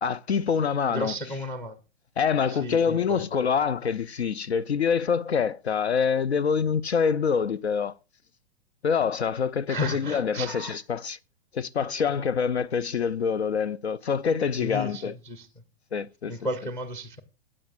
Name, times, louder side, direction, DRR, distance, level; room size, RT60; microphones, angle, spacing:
voice 1, 0.0-1.1 2.2-7.9 8.8-11.2 11.5-15.1 15.9-16.4, left 6 dB, 70° left, 0.5 m, -26 dB
voice 2, 0.9-1.8 2.5-3.2 9.7-10.8 14.6-15.5 16.3-17.2, equal, 5° left, 0.6 m, -33 dB
14.0 x 8.6 x 2.5 m
figure-of-eight pair, 110°, 33 cm